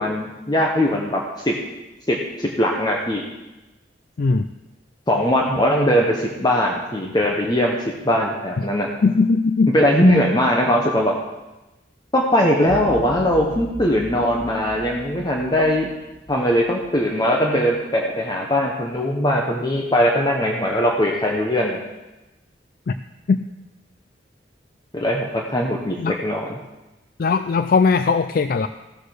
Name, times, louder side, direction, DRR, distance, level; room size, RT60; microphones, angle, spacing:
voice 1, 0.0-1.5 2.1-3.2 5.1-8.9 9.7-11.2 12.1-15.9 16.3-21.8 24.9-26.6, equal, 25° left, -1 dB, 1.1 m, -20 dB
voice 2, 9.0-9.8 22.9-23.0 23.3-23.4 26.0-26.2 27.2-28.7, left 4 dB, 50° left, 10 dB, 0.4 m, -19 dB
sound 1, 12.7-17.0, right 1 dB, 10° right, 1.5 m, -37 dB
15.0 x 6.6 x 6.5 m, 1.0 s
head